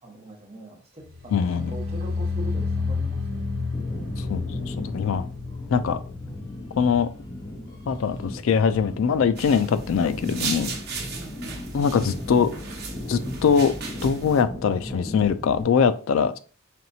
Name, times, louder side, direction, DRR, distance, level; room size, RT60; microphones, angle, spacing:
voice 1, 0.0-3.7 11.1-12.3, right 1 dB, 30° right, 1.1 m, -42 dB
sound 1, 1.1-8.2 8.4-8.9 9.2-9.3, left 4 dB, 75° right, 0.9 m, -31 dB
voice 2, 1.3-1.8 4.2-5.3 5.7-6.0 6.8-7.1 7.9-10.7 11.7-12.5 13.1-13.7 14.0-16.4, left 6 dB, 70° left, 0.3 m, -22 dB
sound 2, 3.7-15.6, left 1 dB, 20° left, 0.7 m, -37 dB
sound 3, 9.4-14.4, right 5 dB, 50° right, 1.0 m, -36 dB
4.3 x 3.1 x 2.7 m
head